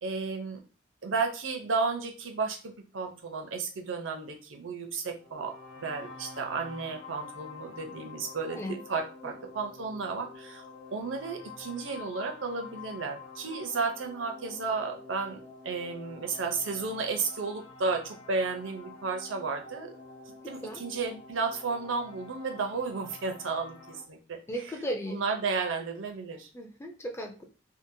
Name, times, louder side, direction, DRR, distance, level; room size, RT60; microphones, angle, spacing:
voice 1, 0.0-0.6 1.0-5.5 5.8-10.6 10.9-19.9 20.5-24.4 25.1-26.5, right 4 dB, 85° right, 3 dB, 0.6 m, -33 dB
sound 1, 5.2-24.0, left 3 dB, 85° left, 1.0 m, -48 dB
voice 2, 20.4-20.8 24.5-25.2 26.5-27.4, equal, 15° left, 3 dB, 0.4 m, -36 dB
2.8 x 2.0 x 2.6 m, 0.34 s
head